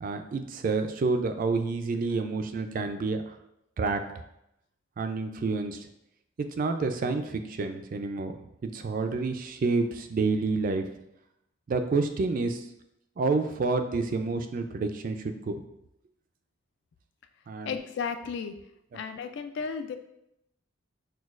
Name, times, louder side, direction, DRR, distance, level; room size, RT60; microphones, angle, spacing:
voice 1, 0.0-3.4 3.8-4.0 5.0-5.9 6.4-8.3 8.6-10.8 11.7-12.7 13.2-15.6 17.5-17.7 18.9-19.0, right 3 dB, 45° right, 7 dB, 0.3 m, -29 dB
voice 2, 17.6-18.5 18.9-20.0, left 6 dB, 60° left, 9 dB, 0.3 m, -34 dB
6.1 x 2.3 x 2.4 m, 0.82 s
head